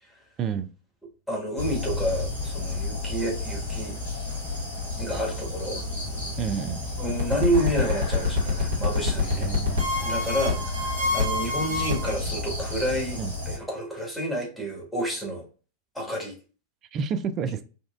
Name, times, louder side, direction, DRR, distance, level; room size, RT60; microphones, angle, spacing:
voice 1, 1.3-4.0 5.0-5.8 7.0-9.5 10.0-13.2 13.4-15.5 15.9-16.3, right 1 dB, 5° left, 1.4 m, -29 dB
sound 1, 1.6-13.6, left 2 dB, 65° left, 1.8 m, -32 dB
voice 2, 6.4-6.8 9.3-9.9 13.2-13.3 16.9-17.6, right 7 dB, 30° right, 0.4 m, -29 dB
sound 2, 7.1-12.1, left 3 dB, 70° right, 1.0 m, -26 dB
4.1 x 2.4 x 2.3 m
figure-of-eight pair, 90°, 0 cm